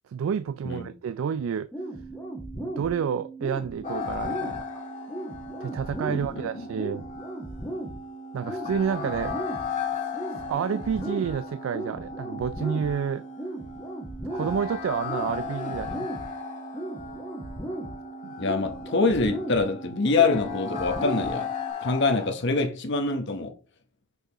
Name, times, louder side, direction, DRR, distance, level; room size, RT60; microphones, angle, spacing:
voice 1, 0.1-1.7 2.6-4.7 5.6-7.0 8.3-9.4 10.5-13.2 14.3-16.1 18.2-18.3, right 7 dB, 90° right, 0.3 m, -29 dB
sound 1, 1.7-21.7, right 2 dB, 10° left, 1.4 m, -37 dB
sound 2, 3.8-22.3, left 7 dB, 40° left, 1.6 m, -37 dB
voice 2, 6.1-6.7 18.4-21.5 21.8-23.5, left 3 dB, 60° left, 1.0 m, -25 dB
6.3 x 5.2 x 2.9 m
head